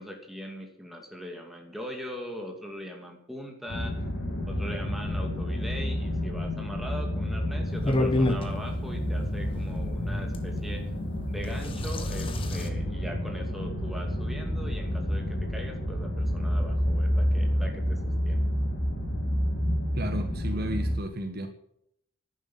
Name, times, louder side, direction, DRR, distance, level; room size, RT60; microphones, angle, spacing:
voice 1, 0.0-4.1 4.5-10.9 11.3-18.5, equal, ahead, 2 dB, 2.5 m, -40 dB
sound 1, 3.7-20.9, equal, 50° left, 4.5 m, -29 dB
sound 2, 7.8-8.5 10.3-10.4 11.4-12.7, left 1 dB, 25° left, 1.4 m, -27 dB
voice 2, 19.9-21.5, right 1 dB, 45° right, 7 dB, 1.4 m, -33 dB
11.5 x 10.0 x 8.6 m, 0.73 s
head